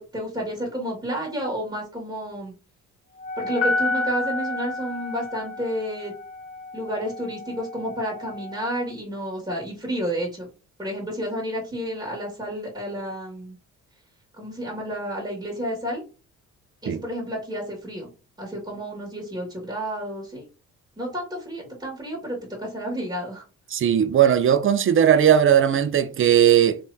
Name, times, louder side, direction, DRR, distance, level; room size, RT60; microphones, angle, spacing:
voice 1, 0.0-2.5 3.4-6.1 6.7-10.5 10.8-13.6 14.4-16.0 16.8-18.1 18.4-20.4 21.0-23.4, equal, 15° right, 1.9 m, -31 dB
Wind instrument woodwind instrument, 3.2-8.9, left 2 dB, 30° left, 0.5 m, -35 dB
Piano, 3.6-5.7, left 2 dB, 50° left, 2.0 m, -28 dB
voice 2, 23.7-26.8, right 9 dB, 45° right, 0.6 m, -18 dB
3.5 x 3.4 x 2.7 m
cardioid pair, 90°, 30 cm